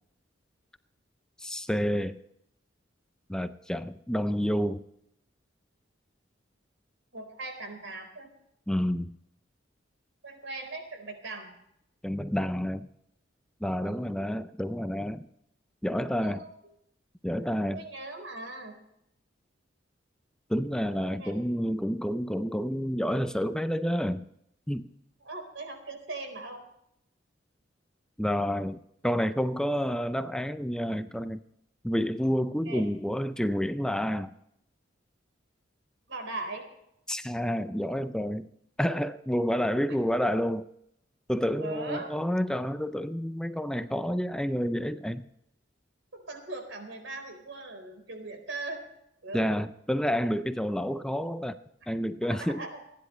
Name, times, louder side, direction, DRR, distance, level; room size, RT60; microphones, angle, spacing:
voice 1, 1.4-2.2 3.3-4.8 8.7-9.2 12.0-12.9 13.6-15.3 15.8-16.4 17.2-17.8 20.5-24.2 24.7-24.9 28.2-31.4 31.8-34.3 37.1-38.5 38.8-40.7 41.3-45.2 49.3-51.6 51.9-52.6, equal, 5° left, 10 dB, 0.5 m, -29 dB
voice 2, 7.1-8.3 10.2-11.5 13.8-14.0 16.2-16.5 17.7-18.7 21.2-21.3 25.2-26.6 32.7-32.8 36.1-36.6 41.6-42.1 46.3-48.8 49.2-49.4 52.4-52.8, right 2 dB, 90° right, 4 dB, 4.2 m, -39 dB
28.5 x 10.5 x 3.2 m, 0.78 s
head